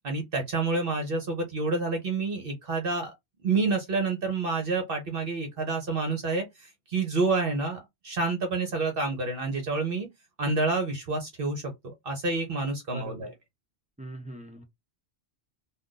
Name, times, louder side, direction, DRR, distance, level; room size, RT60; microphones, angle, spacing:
voice 1, 0.0-3.1 3.4-10.1 10.4-13.3, right 3 dB, 55° right, 0.9 m, -28 dB
voice 2, 12.9-13.3 14.0-14.6, right 1 dB, 10° right, 0.3 m, -41 dB
2.4 x 2.3 x 3.7 m
omnidirectional pair, 1.2 m